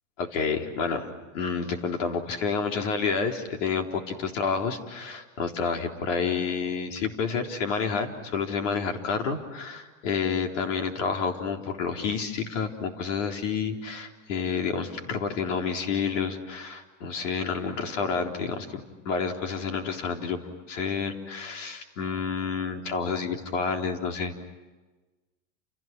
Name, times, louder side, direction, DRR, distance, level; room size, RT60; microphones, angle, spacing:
voice 1, 0.2-1.1 1.3-18.7 19.1-20.4 20.7-24.3, left 5 dB, 65° left, 3 dB, 3.9 m, -29 dB
30.0 x 29.0 x 6.1 m, 1.2 s
supercardioid pair, 175°, 39 cm